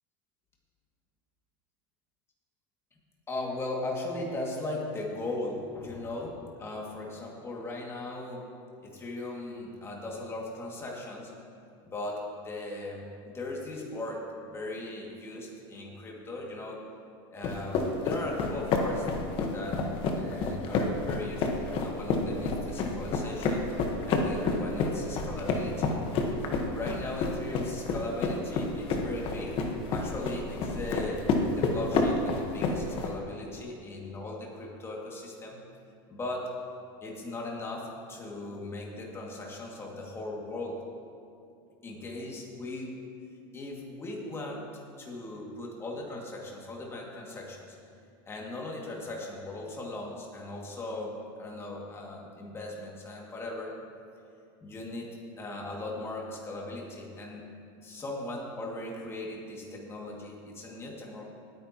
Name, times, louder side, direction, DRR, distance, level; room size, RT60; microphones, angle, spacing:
voice 1, 3.3-8.5 8.8-11.3 11.8-13.0 13.3-16.8 17.3-19.1 19.4-19.8 20.1-23.7 24.0-25.9 26.7-29.6 29.9-31.2 31.5-35.6 36.1-36.5 37.0-40.8 41.8-43.0 43.5-44.7 45.0-47.8 48.3-53.7 54.6-57.5 57.8-61.2, left 2 dB, 20° left, -2 dB, 2.3 m, -38 dB
sound 1, 17.4-33.1, left 3 dB, 45° left, 1.3 m, -29 dB
19.0 x 9.4 x 3.0 m, 2.5 s
supercardioid pair, 135°, 13 cm